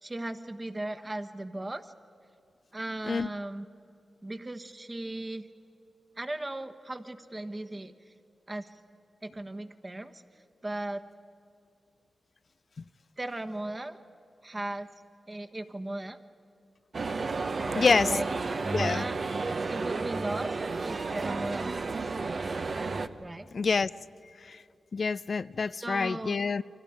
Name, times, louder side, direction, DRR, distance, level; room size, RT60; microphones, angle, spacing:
voice 1, 0.0-1.9 2.7-3.7 4.2-5.5 6.2-8.1 8.5-8.8 9.2-10.2 10.6-11.0 13.2-14.0 14.4-14.9 15.3-16.2 18.1-18.3 18.6-19.2 19.7-20.6 20.8-21.9 23.2-23.5 25.8-26.4, right 1 dB, 25° right, 8 dB, 1.4 m, -37 dB
sound 1, 16.9-23.1, right 3 dB, 55° right, 1.0 m, -32 dB
voice 2, 17.7-18.1 18.7-19.0 23.5-23.9 24.4-24.6 24.9-26.6, left 4 dB, 60° left, 16 dB, 0.4 m, -27 dB
29.5 x 25.0 x 5.2 m, 2.7 s
cardioid pair, 60°, 0 cm